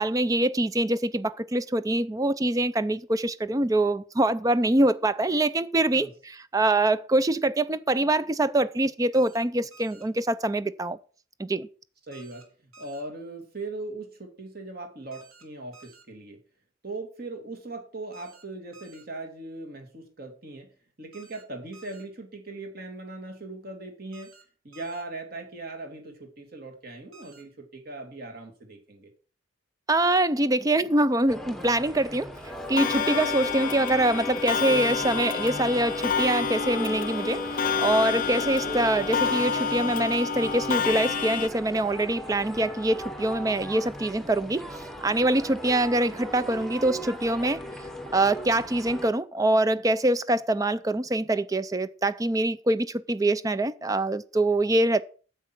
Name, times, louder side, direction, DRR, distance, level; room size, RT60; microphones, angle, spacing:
voice 1, 0.0-6.1 6.5-11.0 11.4-11.7 29.9-32.3 32.7-47.6 48.1-55.0, right 1 dB, 15° right, 0.4 m, -24 dB
sound 1, 9.1-9.4 9.7-10.0 12.1-12.4 12.7-13.0 15.1-15.4 15.7-16.0 18.1-18.4 18.7-19.0 21.1-21.4 21.7-22.0 24.1-24.4 24.7-25.0 27.1-27.4, right 4 dB, 80° right, 2.7 m, -52 dB
voice 2, 12.1-12.4 12.8-16.4 16.8-20.7 21.0-24.3 24.6-29.1, right 2 dB, 45° right, 2.4 m, -39 dB
sound 2, 31.3-49.1, left 1 dB, ahead, 1.0 m, -37 dB
Clock, 32.8-41.5, left 6 dB, 40° left, 0.5 m, -29 dB
9.2 x 7.6 x 6.0 m
head